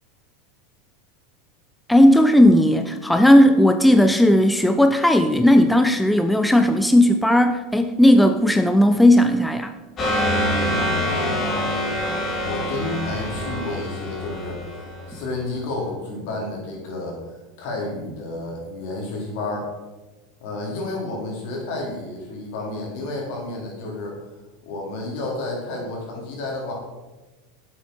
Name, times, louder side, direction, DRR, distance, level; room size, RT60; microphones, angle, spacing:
voice 1, 1.9-9.7, left 1 dB, 5° left, 7 dB, 0.6 m, -15 dB
sound 1, 10.0-15.4, left 1 dB, 35° left, 3.5 m, -25 dB
voice 2, 11.2-11.7 12.3-14.8 15.1-17.2 17.6-19.7 20.4-24.2 24.6-26.7, left 2 dB, 65° left, -2 dB, 3.5 m, -31 dB
8.1 x 7.9 x 4.6 m, 1.2 s
hypercardioid pair, 95°, 0 cm